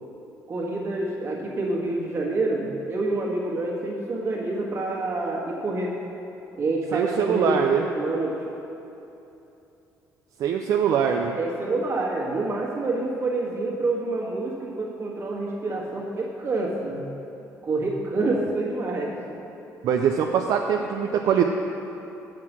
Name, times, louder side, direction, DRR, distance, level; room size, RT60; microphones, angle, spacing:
voice 1, 0.5-5.9 6.5-7.6 7.9-8.4 11.4-17.1 17.6-19.2, right 2 dB, 45° right, -3 dB, 1.7 m, -27 dB
voice 2, 6.9-7.8 10.4-11.3 19.8-21.4, right 8 dB, 70° right, 3 dB, 0.5 m, -22 dB
7.6 x 6.0 x 6.1 m, 2.9 s
cardioid pair, 100°, 6 cm